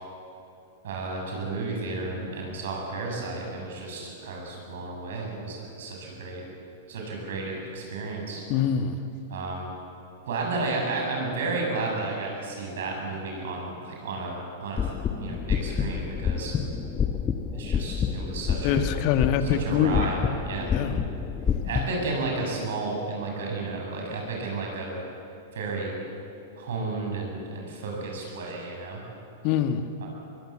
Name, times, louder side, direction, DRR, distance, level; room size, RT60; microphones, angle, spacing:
voice 1, 0.8-6.4 6.9-8.4 9.3-9.7 10.2-14.9 15.2-16.5 17.5-18.9 19.4-20.8 21.6-25.0 25.5-26.0 26.6-29.0 30.0-30.1, right 3 dB, 65° right, 0 dB, 7.8 m, -32 dB
voice 2, 8.5-9.0 18.6-20.1 20.6-21.0 29.4-29.8, left 8 dB, 45° left, 8 dB, 1.6 m, -24 dB
sound 1, 14.8-21.8, left 7 dB, 25° left, 1.4 m, -28 dB
23.5 x 22.5 x 7.6 m, 2.7 s
figure-of-eight pair, 100°, 0 cm